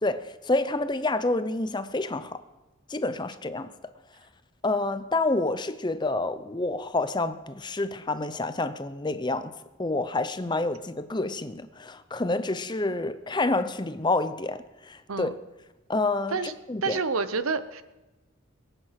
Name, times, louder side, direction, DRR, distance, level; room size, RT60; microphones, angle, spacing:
voice 1, 0.0-2.4 2.9-3.7 4.6-9.5 9.8-15.4 15.9-17.0, left 2 dB, 20° left, 0.6 m, -28 dB
voice 2, 16.8-17.8, right 4 dB, 85° right, 0.8 m, -28 dB
21.5 x 9.0 x 5.8 m
head